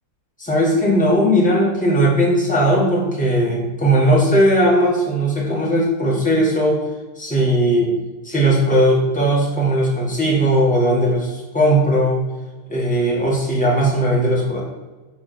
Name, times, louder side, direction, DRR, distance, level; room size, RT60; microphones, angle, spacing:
voice 1, 0.4-6.8 7.2-7.9 8.2-12.2 12.7-14.6, equal, 5° left, -5 dB, 1.2 m, -17 dB
5.8 x 5.1 x 6.0 m, 1.2 s
omnidirectional pair, 3.4 m